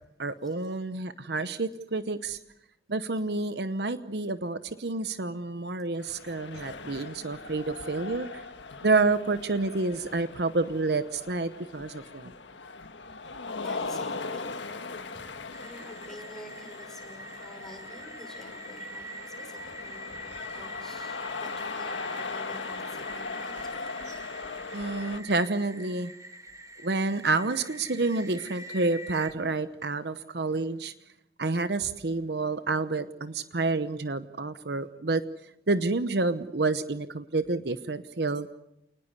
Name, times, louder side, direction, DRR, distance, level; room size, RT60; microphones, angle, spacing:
voice 1, 0.2-2.4 2.9-8.5 8.8-12.3 24.7-26.1 26.8-30.9 31.4-35.2 35.7-38.6, right 3 dB, 60° right, 12 dB, 0.9 m, -29 dB
sound 1, 6.0-25.2, left 4 dB, 80° left, 1.7 m, -39 dB
voice 2, 13.6-15.3 15.6-24.0 24.7-24.8, equal, ahead, 3 dB, 5.7 m, -49 dB
sound 2, 15.5-29.3, equal, 20° right, 1.5 m, -44 dB
28.0 x 20.0 x 8.1 m, 0.84 s
head